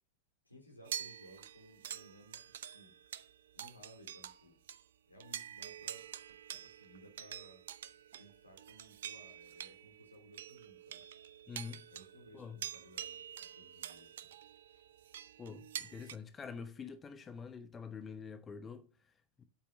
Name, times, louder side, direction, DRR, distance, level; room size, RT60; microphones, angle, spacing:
voice 1, 0.5-2.9 3.5-4.6 5.1-6.0 6.5-7.6 8.2-11.0 11.9-14.3 14.7-14.9, equal, 85° left, 3.4 m, -59 dB
sound 1, 0.9-4.4 4.7-4.8 5.2-16.2, right 10 dB, 60° right, 0.6 m, -47 dB
voice 2, 11.5-11.9 12.3-12.6 15.4-19.4, left 6 dB, 20° left, 0.9 m, -47 dB
9.2 x 8.3 x 5.9 m
figure-of-eight pair, 90°, 0 cm